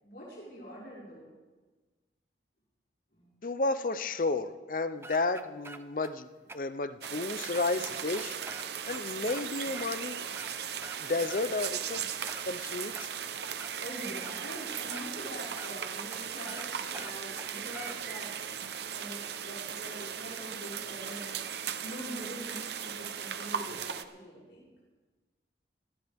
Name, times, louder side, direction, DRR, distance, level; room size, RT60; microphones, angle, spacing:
voice 1, 0.0-1.3 3.1-3.3 13.8-18.5 18.9-21.4 21.8-24.6, equal, 70° left, -9 dB, 5.9 m, -44 dB
voice 2, 3.4-6.3 6.5-8.4 8.9-10.3 11.0-12.0 12.5-13.1, left 3 dB, 50° left, 12 dB, 0.6 m, -32 dB
sound 1, 5.0-6.1 6.5-6.6 7.0-7.1 7.5-9.4 9.7-9.9 10.2-11.0 11.3-12.5 12.9-13.7 14.2-14.4 14.9-15.0 15.6-15.7 16.1-16.2 16.5-16.7 16.9-18.0, right 3 dB, 15° right, 0.5 m, -46 dB
sound 2, 7.0-24.0, right 8 dB, 70° right, 0.8 m, -37 dB
20.0 x 15.0 x 3.5 m, 1.3 s
head